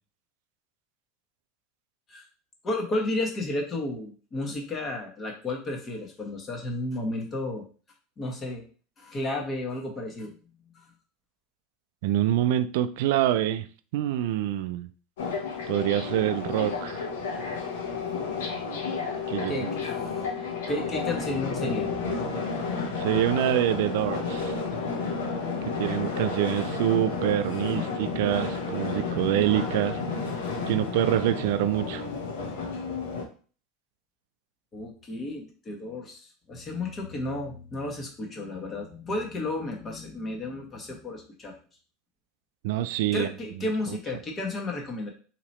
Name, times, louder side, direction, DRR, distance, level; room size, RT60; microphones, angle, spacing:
voice 1, 2.6-7.6 8.2-8.6 9.0-10.3 10.7-10.8 19.5-20.3 20.7-21.9 34.7-41.5 43.1-45.1, left 2 dB, 30° left, 1.2 m, -32 dB
voice 2, 12.0-13.7 13.9-14.9 15.7-17.0 19.3-19.7 23.0-24.5 25.8-30.0 30.7-32.1 42.6-43.3 43.6-44.0, right 12 dB, 75° right, 0.3 m, -26 dB
sound 1, 15.2-33.2, left 4 dB, 85° left, 0.9 m, -31 dB
2.9 x 2.9 x 4.1 m
supercardioid pair, 105°, 0 cm